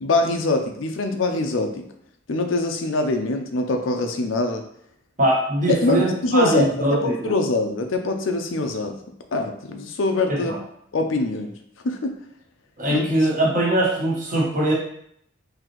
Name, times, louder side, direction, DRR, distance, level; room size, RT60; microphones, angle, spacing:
voice 1, 0.0-1.9 2.3-4.6 5.7-9.0 9.3-10.5 10.9-11.5 11.8-12.2 12.9-13.0, left 2 dB, 80° left, 5 dB, 0.5 m, -23 dB
voice 2, 5.2-7.3 10.3-10.6 12.8-14.7, right 1 dB, 45° right, -4 dB, 1.1 m, -22 dB
3.9 x 2.8 x 3.0 m, 0.71 s
head